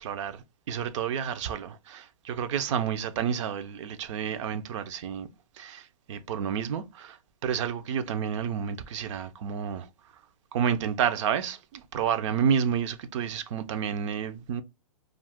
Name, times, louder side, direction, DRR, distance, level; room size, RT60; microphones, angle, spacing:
voice 1, 0.0-5.3 5.6-7.2 7.4-9.9 10.5-14.6, right 8 dB, 55° right, 0.5 m, -30 dB
2.4 x 2.2 x 3.4 m
hypercardioid pair, 135°, 19 cm